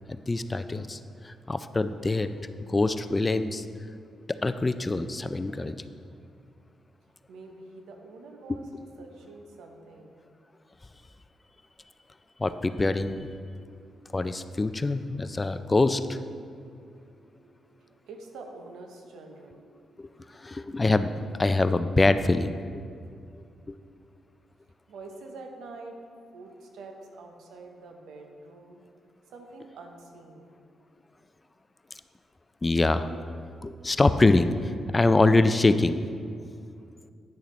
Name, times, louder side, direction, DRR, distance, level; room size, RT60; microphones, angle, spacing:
voice 1, 0.1-2.3 2.6-3.6 4.3-5.8 12.4-13.3 14.1-16.2 20.0-20.1 20.4-21.1 21.4-22.5 23.7-23.8 32.6-33.1 33.6-36.0, left 2 dB, 25° left, 11 dB, 0.3 m, -24 dB
voice 2, 7.3-10.1 13.5-14.1 16.5-20.8 24.9-26.0 26.3-28.8 29.3-30.5, right 3 dB, 85° right, 3 dB, 0.8 m, -47 dB
9.4 x 6.6 x 3.1 m, 2.3 s
cardioid pair, 65°, 0 cm